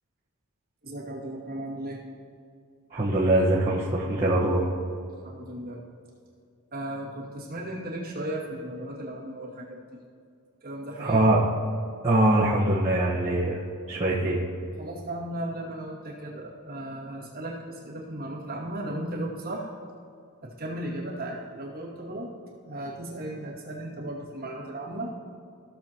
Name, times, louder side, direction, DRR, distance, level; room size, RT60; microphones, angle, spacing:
voice 1, 0.8-2.0 5.2-5.8 6.7-9.8 10.6-11.2 14.8-19.7 20.4-22.3 22.7-25.1, right 1 dB, 45° right, -5 dB, 2.2 m, -36 dB
voice 2, 2.9-4.6 11.0-11.4 12.0-13.6 13.9-14.4, right 1 dB, 30° right, -10 dB, 1.3 m, -22 dB
16.5 x 6.9 x 3.0 m, 2.4 s
head